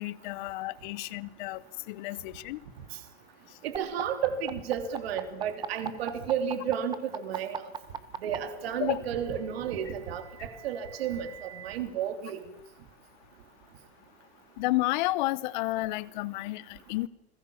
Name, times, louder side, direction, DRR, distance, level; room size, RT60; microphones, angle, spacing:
voice 1, 0.0-1.6 1.9-2.6 8.8-9.0 14.6-17.1, left 19 dB, 45° left, 19 dB, 1.0 m, -31 dB
voice 2, 3.6-7.7 8.2-12.4, right 8 dB, 65° right, 8 dB, 3.3 m, -32 dB
sound 1, 3.7-8.4 9.5-11.8, right 7 dB, 10° right, 1.3 m, -39 dB
29.5 x 21.0 x 7.2 m, 0.90 s
supercardioid pair, 150°, 33 cm